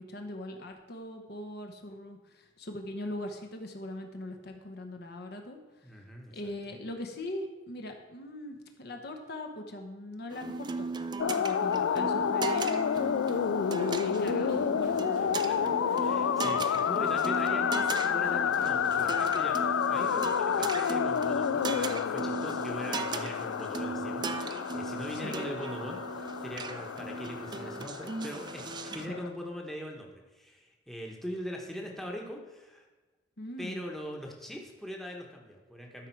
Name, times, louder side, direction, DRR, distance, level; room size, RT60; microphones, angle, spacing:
voice 1, 0.0-5.6 6.3-13.3 14.0-15.4 25.2-25.5 29.1-29.2 33.4-33.8, left 1 dB, 55° left, 4 dB, 0.9 m, -41 dB
voice 2, 5.8-6.8 15.3-15.6 15.9-19.6 19.9-32.9 33.6-36.1, equal, ahead, 0 dB, 1.0 m, -41 dB
sound 1, 10.3-29.1, right 4 dB, 25° right, 0.3 m, -38 dB
sound 2, 11.2-29.3, left 7 dB, 85° left, 0.3 m, -30 dB
sound 3, 12.9-21.8, right 2 dB, 80° right, 0.9 m, -58 dB
12.5 x 4.9 x 4.5 m, 1.2 s
head